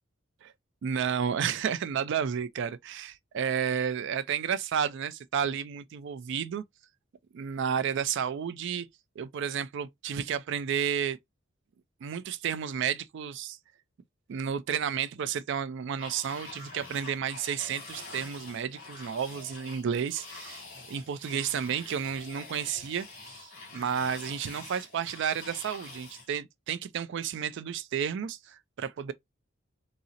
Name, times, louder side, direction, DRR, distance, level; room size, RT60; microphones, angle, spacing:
voice 1, 0.8-6.6 7.3-8.9 9.2-11.2 12.0-13.6 14.3-23.1 23.3-23.4 23.7-29.1, right 8 dB, 60° right, 0.3 m, -31 dB
sound 1, 16.0-26.3, left 3 dB, 45° left, 1.5 m, -46 dB
3.7 x 2.0 x 2.6 m
head